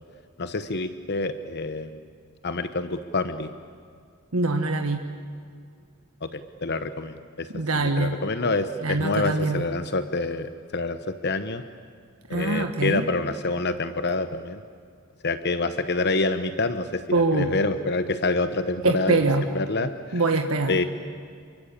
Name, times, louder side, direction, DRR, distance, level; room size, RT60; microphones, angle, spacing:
voice 1, 0.4-2.0 2.4-3.5 6.2-7.5 7.7-11.6 12.3-14.6 15.2-19.2 19.5-20.2 20.7-20.8, left 3 dB, 50° left, 10 dB, 1.0 m, -27 dB
voice 2, 4.3-5.0 7.5-8.2 8.8-9.6 12.3-13.0 17.1-17.6 18.8-19.4 20.1-20.8, right 3 dB, 70° right, 4 dB, 1.6 m, -23 dB
28.5 x 23.5 x 8.6 m, 2.2 s
head